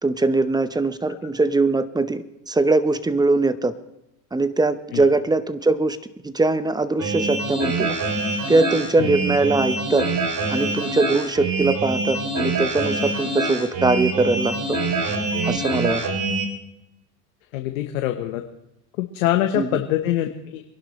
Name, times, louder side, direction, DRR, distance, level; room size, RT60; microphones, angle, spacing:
voice 1, 0.0-3.7 4.3-6.0 6.2-8.0 8.5-10.1 10.5-14.8 15.5-16.0 19.6-19.8, right 3 dB, 10° right, 13 dB, 0.8 m, -21 dB
sound 1, 7.0-16.5, right 3 dB, 45° right, 3.2 m, -25 dB
voice 2, 17.5-18.4 19.0-20.6, left 13 dB, 80° left, 5 dB, 1.2 m, -24 dB
24.0 x 11.5 x 3.2 m, 0.89 s
hypercardioid pair, 95°, 41 cm